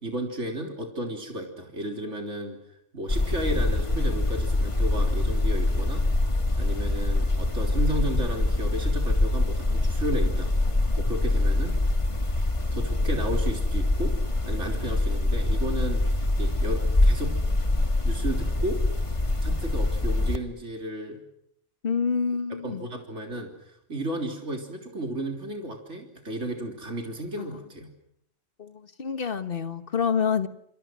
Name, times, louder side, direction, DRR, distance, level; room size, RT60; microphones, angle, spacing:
voice 1, 0.0-2.6 2.9-6.1 6.6-10.5 11.0-11.8 12.7-14.1 14.5-17.4 18.0-18.8 19.4-21.2 22.6-27.9, right 1 dB, 75° right, 2 dB, 3.9 m, -33 dB
sound 1, 3.1-20.4, left 2 dB, 25° left, 1.7 m, -24 dB
voice 2, 21.8-22.8 27.4-27.5 28.6-30.5, left 6 dB, 50° left, 10 dB, 1.6 m, -27 dB
27.5 x 27.5 x 6.3 m, 0.74 s
omnidirectional pair, 1.2 m